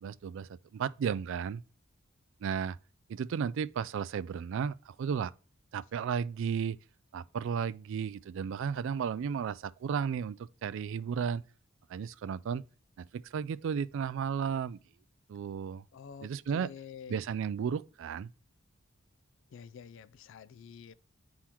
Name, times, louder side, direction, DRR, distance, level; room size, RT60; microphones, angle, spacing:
voice 1, 0.0-1.6 2.4-2.8 3.1-5.3 5.7-6.8 7.1-11.4 11.9-12.6 13.0-14.8 15.3-15.8 16.2-16.7 17.1-18.3, right 7 dB, 65° right, 0.3 m, -34 dB
voice 2, 15.9-17.2 19.5-20.9, left 7 dB, 60° left, 0.3 m, -48 dB
9.8 x 3.8 x 2.9 m
head